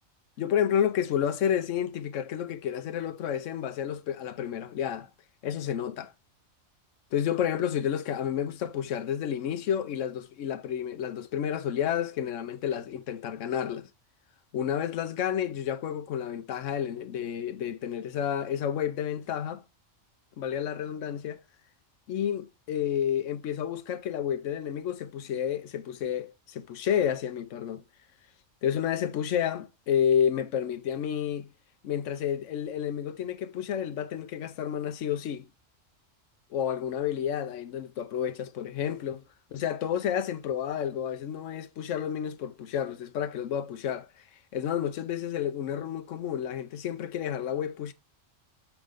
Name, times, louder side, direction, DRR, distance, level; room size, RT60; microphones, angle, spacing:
voice 1, 0.4-5.1 5.4-6.1 7.1-13.9 14.5-19.6 20.4-21.4 22.1-27.8 28.6-31.5 31.8-35.5 36.5-39.2 39.5-44.2 44.5-47.9, left 9 dB, 70° left, 1.1 m, -30 dB
7.4 x 3.8 x 3.3 m
omnidirectional pair, 1.3 m